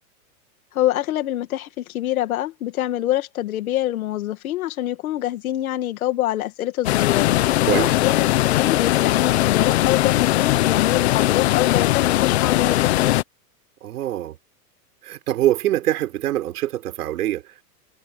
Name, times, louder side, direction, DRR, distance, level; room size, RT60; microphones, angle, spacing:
voice 1, 0.7-7.3 7.7-13.2, left 14 dB, 55° left, 2.2 m, -25 dB
sound 1, 6.8-13.2, left 15 dB, 40° left, 0.9 m, -19 dB
voice 2, 13.8-14.4 15.0-17.6, right 13 dB, 65° right, 4.0 m, -24 dB
supercardioid pair, 175°, 49 cm